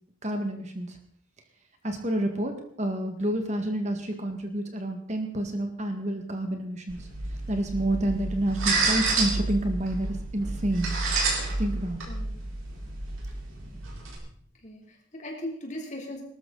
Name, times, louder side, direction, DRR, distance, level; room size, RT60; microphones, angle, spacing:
voice 1, 0.2-1.0 1.8-10.9 11.6-12.0 13.6-14.0, right 1 dB, 35° right, 4 dB, 1.9 m, -29 dB
sound 1, 6.9-14.2, right 3 dB, 80° right, 4.4 m, -30 dB
voice 2, 14.6-16.2, left 1 dB, 35° left, 0 dB, 3.5 m, -38 dB
20.0 x 13.0 x 4.1 m, 0.64 s
head